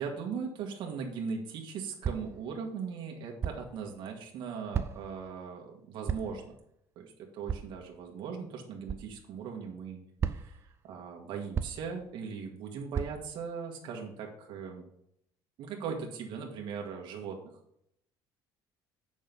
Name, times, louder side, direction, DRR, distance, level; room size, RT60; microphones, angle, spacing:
voice 1, 0.0-6.4 7.0-10.0 10.3-14.8 15.6-17.4, right 6 dB, 60° right, 1 dB, 1.8 m, -39 dB
sound 1, 2.0-2.4 3.4-3.7 4.7-5.2 6.1-6.4 7.5-7.7 8.9-9.1 10.2-10.6 11.5-11.9 12.9-13.1, right 7 dB, 30° right, 0.5 m, -33 dB
8.1 x 6.2 x 5.5 m, 0.73 s
cardioid pair, 145°, 9 cm